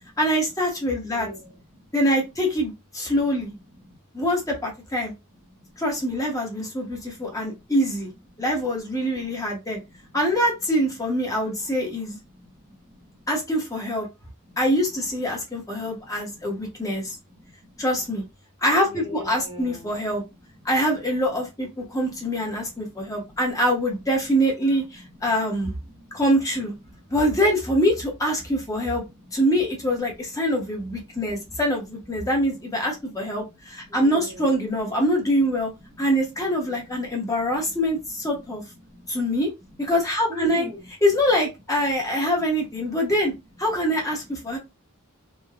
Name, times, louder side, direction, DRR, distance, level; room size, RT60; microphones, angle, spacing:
voice 1, 0.2-1.3 1.9-3.5 4.1-5.1 5.8-8.1 8.4-9.8 10.1-12.2 13.3-14.1 14.6-17.2 17.8-18.2 18.6-20.2 20.6-25.7 26.1-26.7 27.1-29.0 29.3-35.7 36.0-38.6 39.1-39.5 39.8-40.7 41.0-43.3 43.6-44.6, equal, 15° left, 0.9 m, -24 dB
voice 2, 1.0-1.9 3.8-4.0 5.5-5.8 7.1-7.7 8.3-8.5 9.0-9.3 9.8-10.0 11.9-12.0 12.3-13.2 14.4-14.6 15.8-17.8 18.8-20.0 20.6-20.7 22.1-23.6 25.2-26.2 26.8-27.0 29.0-29.4 30.8-31.6 32.9-33.5 33.8-34.7 35.9-36.2 36.6-38.5 38.8-39.4 40.3-40.8 41.8-41.9 44.4-44.6, right 1 dB, 25° right, 0.7 m, -43 dB
3.2 x 2.1 x 2.3 m
head